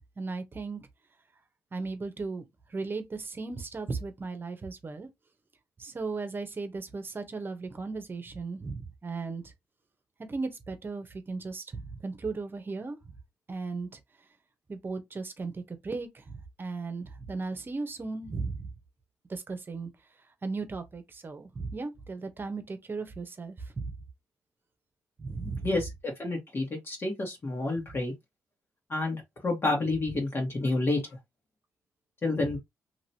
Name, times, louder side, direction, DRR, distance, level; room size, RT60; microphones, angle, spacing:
voice 1, 0.2-0.9 1.7-5.1 5.8-9.5 10.2-13.0 13.5-14.0 14.7-18.7 19.3-19.9 20.4-23.9 25.2-25.7, right 4 dB, 35° right, 1.0 m, -36 dB
voice 2, 25.4-28.1 28.9-31.0 32.2-32.6, left 2 dB, 40° left, 1.6 m, -29 dB
3.0 x 2.9 x 2.8 m
cardioid pair, 75°, 6 cm